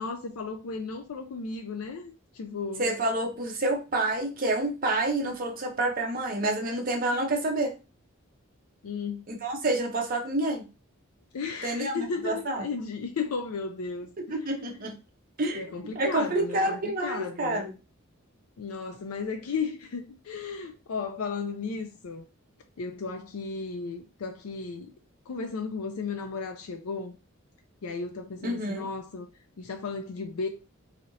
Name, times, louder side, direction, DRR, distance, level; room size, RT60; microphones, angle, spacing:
voice 1, 0.0-2.8 8.8-9.3 11.3-14.9 15.5-17.7 18.6-22.2 22.8-24.9 25.3-27.1 27.8-29.3 29.6-30.5, left 4 dB, 85° left, 0.4 m, -35 dB
voice 2, 2.8-7.8 9.3-10.7 11.6-12.7 14.3-14.9 15.4-15.7 15.9-17.7 28.4-28.9, right 2 dB, 40° right, 0.7 m, -28 dB
3.1 x 2.7 x 2.6 m
head